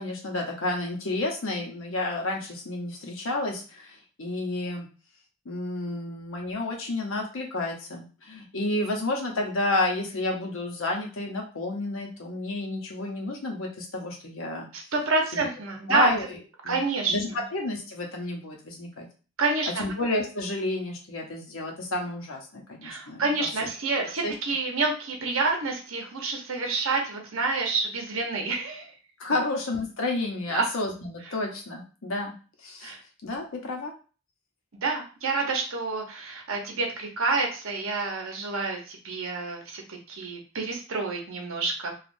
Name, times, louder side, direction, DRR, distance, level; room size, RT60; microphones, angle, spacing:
voice 1, 0.0-4.9 5.4-14.7 15.3-15.5 15.9-16.2 16.6-16.8 17.1-19.1 19.8-23.5 24.2-24.3 29.2-32.3 32.6-32.9 33.2-33.9, left 2 dB, 75° left, 0 dB, 0.8 m, -30 dB
voice 2, 14.7-16.1 16.7-17.4 19.4-19.8 22.8-28.9 30.5-30.7 32.8-33.0 34.7-41.9, right 3 dB, 75° right, 2 dB, 0.9 m, -28 dB
3.3 x 2.4 x 2.6 m, 0.36 s
head